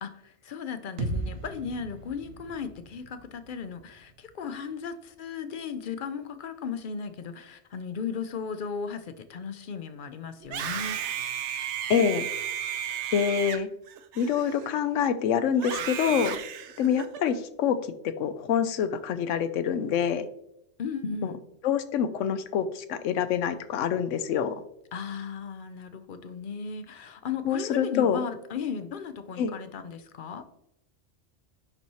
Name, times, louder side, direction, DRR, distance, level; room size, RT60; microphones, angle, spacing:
voice 1, 0.0-11.0 20.8-21.4 24.9-30.5, left 6 dB, 55° left, 10 dB, 0.6 m, -36 dB
sound 1, 1.0-4.9, right 2 dB, 85° right, 1.3 m, -38 dB
Screaming, 10.4-14.9 15.6-17.3, right 9 dB, 65° right, 0.9 m, -34 dB
voice 2, 11.9-12.3 13.1-13.7 14.2-16.4 16.8-17.8 18.0-20.3 21.2-21.3 21.6-24.6 27.4-28.2 29.4-29.5, left 8 dB, 75° left, 12 dB, 1.0 m, -26 dB
10.5 x 4.2 x 3.1 m, 0.80 s
omnidirectional pair, 1.3 m